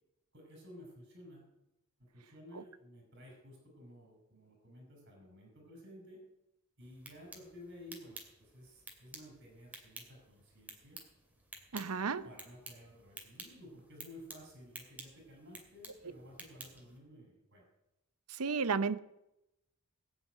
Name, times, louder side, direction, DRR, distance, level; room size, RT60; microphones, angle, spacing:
voice 1, 0.3-1.5 2.0-6.2 6.8-11.0 12.2-17.7, left 1 dB, 55° right, 5.4 m, -54 dB
sound 1, 6.8-17.0, right 2 dB, 10° right, 2.5 m, -53 dB
voice 2, 11.7-12.2 18.3-19.0, right 5 dB, 90° right, 0.8 m, -32 dB
20.5 x 7.4 x 9.2 m
head